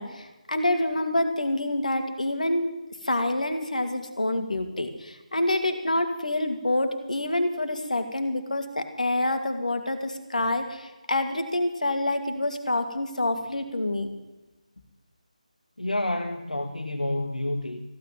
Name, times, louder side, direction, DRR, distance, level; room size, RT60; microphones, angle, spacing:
voice 1, 0.0-2.7 3.0-14.1, left 1 dB, 65° left, 7 dB, 2.4 m, -27 dB
voice 2, 15.8-17.8, left 1 dB, 85° left, 5 dB, 1.4 m, -29 dB
15.5 x 9.3 x 9.1 m, 1.1 s
figure-of-eight pair, 155°, 4 cm